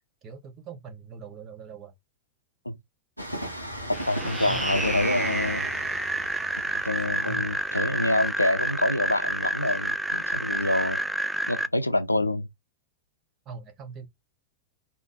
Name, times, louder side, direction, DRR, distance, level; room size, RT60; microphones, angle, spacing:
voice 1, 0.2-1.9 4.4-4.8 7.1-7.4 13.4-14.1, right 5 dB, 30° right, 1.4 m, -41 dB
Train, 3.2-10.6 10.9-11.0, right 1 dB, 90° right, 1.0 m, -37 dB
sound 1, 3.9-11.7, right 1 dB, 5° right, 0.3 m, -29 dB
voice 2, 4.1-5.7 6.7-11.0 11.5-12.5, left 1 dB, 85° left, 0.5 m, -26 dB
3.9 x 2.8 x 3.6 m
figure-of-eight pair, 90°, 0 cm